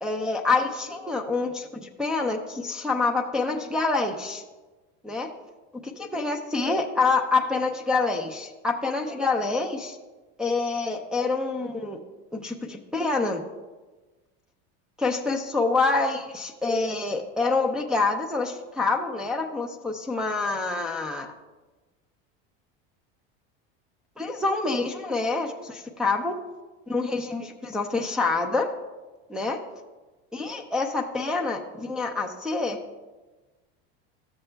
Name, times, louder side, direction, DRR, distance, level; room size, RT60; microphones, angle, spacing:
voice 1, 0.0-4.4 5.0-5.3 5.8-10.0 10.4-12.0 12.3-13.4 15.0-21.3 24.2-26.4 26.9-28.7 29.3-29.6 30.3-32.8, left 3 dB, ahead, -1 dB, 0.5 m, -26 dB
13.5 x 6.8 x 2.2 m, 1.2 s
supercardioid pair, 135°, 29 cm